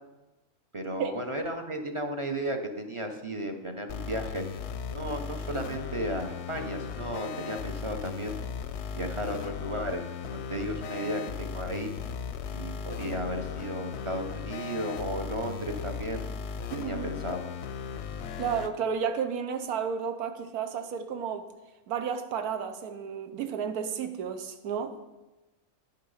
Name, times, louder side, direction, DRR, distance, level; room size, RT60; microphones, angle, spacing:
voice 1, 0.7-4.4 4.9-8.4 8.9-11.9 12.5-16.2 16.7-17.5, right 1 dB, 30° right, 0.5 m, -34 dB
sound 1, 3.9-18.7, left 6 dB, 60° left, 0.7 m, -37 dB
voice 2, 16.7-17.1 18.4-21.4 21.9-24.9, right 7 dB, 90° right, 1.3 m, -32 dB
10.0 x 6.5 x 5.5 m
omnidirectional pair, 1.5 m